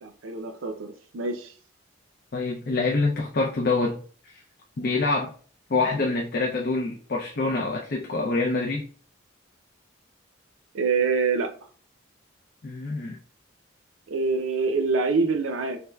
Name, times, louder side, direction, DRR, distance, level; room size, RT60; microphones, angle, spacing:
voice 1, 0.0-1.5 10.7-11.5 14.1-15.8, right 4 dB, 85° right, 0.5 m, -25 dB
voice 2, 2.3-4.0 4.2-4.4 4.8-5.3 5.7-8.9 12.6-13.2, left 3 dB, 50° left, 0.5 m, -26 dB
3.4 x 3.3 x 2.2 m
head